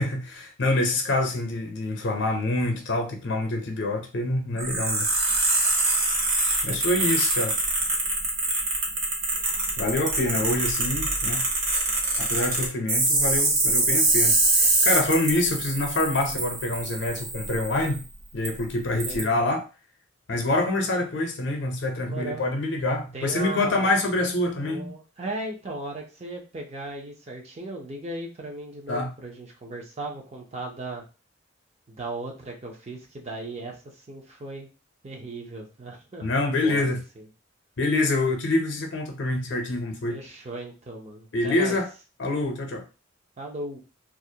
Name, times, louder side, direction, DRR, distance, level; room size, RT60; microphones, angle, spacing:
voice 1, 0.0-5.1 6.6-7.6 9.8-11.4 12.2-18.0 18.3-19.6 20.3-24.9 28.9-29.1 36.2-37.0 37.8-40.2 41.3-41.9 42.2-42.8, left 2 dB, 65° left, 0.6 m, -26 dB
sound 1, 4.6-18.0 18.4-18.5 19.0-19.2, right 2 dB, 65° right, 0.9 m, -24 dB
voice 2, 6.7-7.1 16.3-16.5 18.9-19.4 22.0-22.4 23.1-23.9 24.6-31.0 31.9-34.7 35.0-36.3 36.6-37.2 40.1-41.8 43.4-43.8, right 2 dB, 35° right, 0.5 m, -37 dB
2.4 x 2.1 x 2.7 m
head